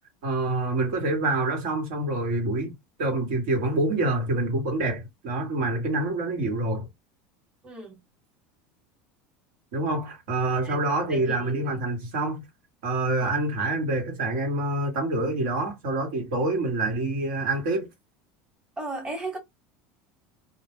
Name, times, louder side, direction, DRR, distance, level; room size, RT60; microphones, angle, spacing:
voice 1, 0.2-2.7 3.0-6.9 9.7-12.4 12.8-17.9, right 2 dB, 70° right, 1.2 m, -26 dB
voice 2, 7.6-8.0 10.6-10.8 11.1-11.8 13.2-13.4 18.8-19.4, right 3 dB, 15° right, 1.1 m, -36 dB
2.3 x 2.1 x 3.4 m
supercardioid pair, 125°, 5 cm